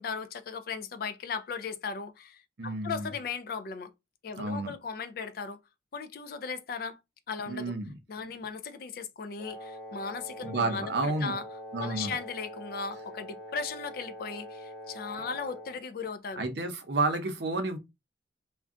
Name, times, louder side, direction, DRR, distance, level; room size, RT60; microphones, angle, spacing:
voice 1, 0.0-3.9 4.2-5.6 5.9-7.0 7.3-7.7 8.1-11.4 11.8-16.4, left 5 dB, 50° left, 0.3 m, -37 dB
voice 2, 2.6-3.1 4.4-4.7 7.4-7.9 10.4-11.3 11.7-12.1 15.1-15.2 16.4-17.8, right 2 dB, 60° right, 0.6 m, -31 dB
Wind instrument woodwind instrument, 9.4-15.8, left 1 dB, 5° left, 1.0 m, -44 dB
2.5 x 2.2 x 3.5 m
head